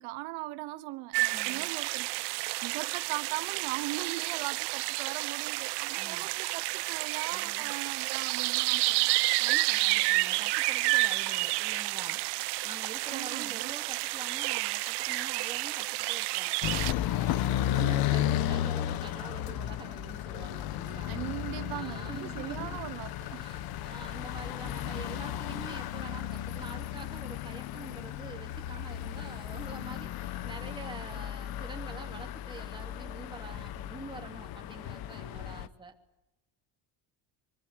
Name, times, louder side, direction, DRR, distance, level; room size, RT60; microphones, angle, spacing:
voice 1, 0.0-9.1 13.1-13.7 17.8-18.1 21.1-23.5, right 20 dB, 85° right, 1.2 m, -39 dB
sound 1, 1.1-16.9, right 21 dB, 60° right, 0.9 m, -30 dB
voice 2, 1.3-1.7 5.9-6.3 7.3-7.7 9.4-12.2 12.6-16.5 17.0-21.2 21.6-22.8 23.4-35.9, right 4 dB, 10° right, 2.7 m, -46 dB
sound 2, 16.6-35.7, left 12 dB, 50° left, 1.1 m, -34 dB
26.0 x 22.0 x 9.3 m
cardioid pair, 175°, 47 cm